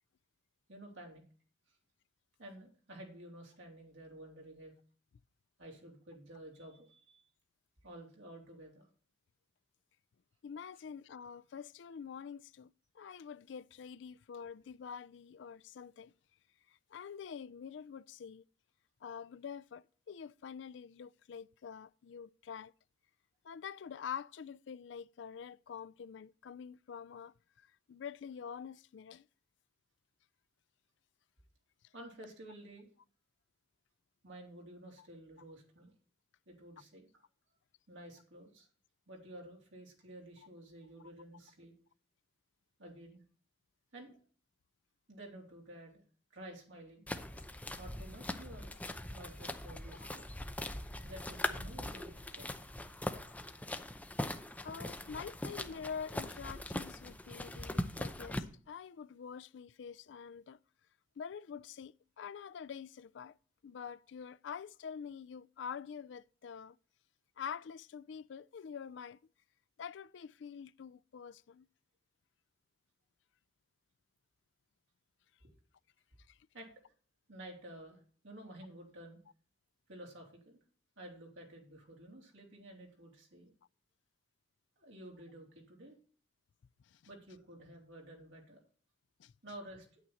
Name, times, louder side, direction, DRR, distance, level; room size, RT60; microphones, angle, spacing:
voice 1, 0.7-1.2 1.7-1.8 2.4-4.7 5.6-7.2 7.8-8.9 31.9-32.9 34.2-35.9 36.5-37.2 37.9-38.7 39.1-41.7 42.8-43.2 43.9-44.2 45.1-46.0 46.3-47.1 47.8-48.8 49.1-50.2 51.0-52.5 75.4-75.5 76.5-76.7 77.3-79.2 79.9-80.6 81.0-83.5 84.8-86.0 87.1-88.6 89.4-90.0, right 1 dB, 80° right, 3.3 m, -52 dB
voice 2, 10.4-16.1 16.7-18.4 19.0-22.7 23.4-29.3 35.0-35.1 49.9-50.1 54.6-60.6 61.2-63.3 63.6-66.8 67.4-69.2 69.8-71.7 76.3-76.4 86.8-87.0 89.2-89.3, left 7 dB, 70° left, 0.4 m, -46 dB
sound 1, 47.1-58.4, left 1 dB, 10° left, 0.6 m, -41 dB
9.2 x 9.0 x 4.1 m
head